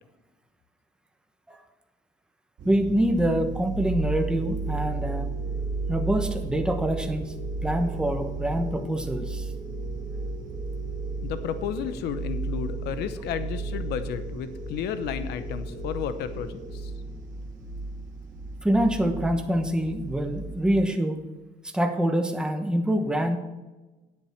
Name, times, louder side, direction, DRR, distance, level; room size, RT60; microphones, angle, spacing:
voice 1, 2.6-5.3 5.9-7.3 7.6-9.5 18.6-21.3 21.6-23.4, right 1 dB, 5° right, 5 dB, 1.1 m, -25 dB
sound 1, 2.6-20.7, right 3 dB, 50° right, 1.9 m, -34 dB
sound 2, 4.2-17.4, equal, 50° left, 3.3 m, -44 dB
voice 2, 11.2-16.9, left 8 dB, 80° left, 11 dB, 0.8 m, -32 dB
9.9 x 8.3 x 4.4 m, 1.1 s
cardioid pair, 110°, 17 cm